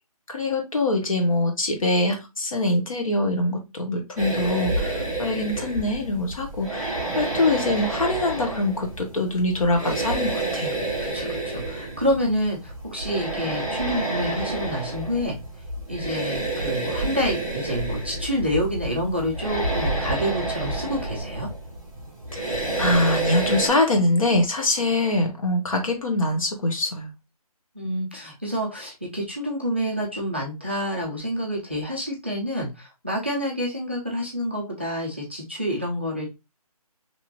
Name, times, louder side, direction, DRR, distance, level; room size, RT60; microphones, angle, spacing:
voice 1, 0.3-10.7 22.3-27.1, left 2 dB, 60° left, 1.0 m, -24 dB
sound 1, 4.2-23.7, right 2 dB, 5° left, 1.0 m, -29 dB
voice 2, 11.0-15.4 15.9-21.5 25.2-25.3 27.8-36.3, equal, 20° right, 0.3 m, -28 dB
2.8 x 2.4 x 2.8 m
figure-of-eight pair, 160°, 20 cm